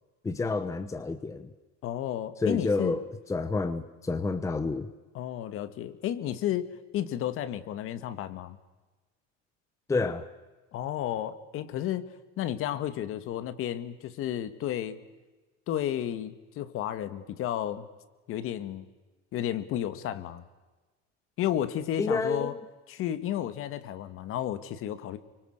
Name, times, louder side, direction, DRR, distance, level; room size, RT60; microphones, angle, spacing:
voice 1, 0.2-1.5 2.4-3.0 3.3-4.9 9.9-10.2 22.0-22.6, left 3 dB, 10° left, 10 dB, 0.9 m, -29 dB
voice 2, 1.8-3.0 5.1-8.6 10.7-12.1 12.4-15.0 15.7-17.9 18.3-18.9 19.3-20.4 21.4-22.5 22.9-25.2, left 11 dB, 45° left, 12 dB, 1.9 m, -32 dB
29.0 x 25.0 x 6.7 m, 1.2 s
cardioid pair, 155°, 30 cm